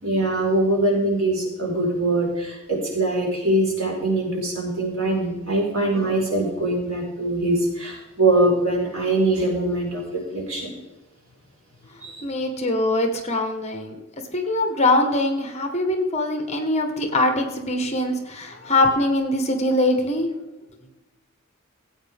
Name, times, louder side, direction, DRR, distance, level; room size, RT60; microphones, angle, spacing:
voice 1, 0.0-10.7 12.0-12.2, right 2 dB, 65° right, -3 dB, 4.8 m, -23 dB
voice 2, 12.2-14.0 14.3-20.3, left 1 dB, 30° left, 5 dB, 1.5 m, -22 dB
17.0 x 8.8 x 3.6 m, 1.1 s
head